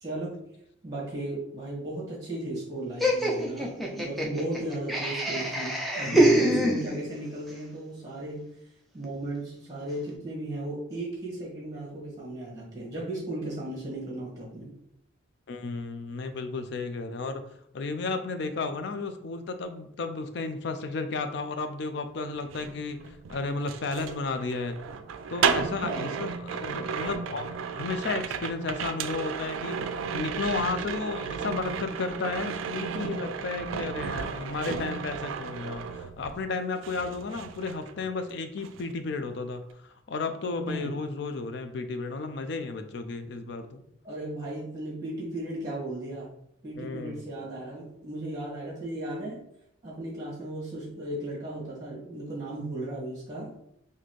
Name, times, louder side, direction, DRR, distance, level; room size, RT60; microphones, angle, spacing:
voice 1, 0.0-0.4 0.8-8.5 8.9-14.7 25.8-26.1 40.7-40.9 44.0-46.3 46.6-49.4 49.8-53.5, right 1 dB, 20° right, -5 dB, 1.4 m, -35 dB
Laughter, 3.0-7.3, right 1 dB, ahead, 0.4 m, -25 dB
voice 2, 6.1-6.7 15.5-17.4 17.7-24.8 25.3-43.8 46.8-47.2, left 3 dB, 60° left, 8 dB, 0.4 m, -33 dB
sound 1, 22.4-36.5 36.8-38.3 38.6-38.9, right 6 dB, 80° right, 0.3 m, -33 dB
4.0 x 2.7 x 3.1 m, 0.74 s
head